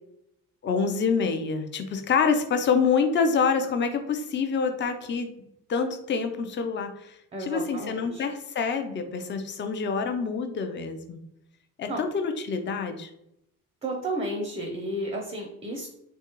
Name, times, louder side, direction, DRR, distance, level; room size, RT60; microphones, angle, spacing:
voice 1, 0.6-5.3 5.7-11.2 11.8-13.1, left 5 dB, 30° left, 7 dB, 0.4 m, -26 dB
voice 2, 7.3-8.2 11.9-12.0 13.8-15.9, right 1 dB, 15° right, 1 dB, 0.5 m, -32 dB
2.9 x 2.3 x 2.9 m, 0.80 s
supercardioid pair, 75°, 37 cm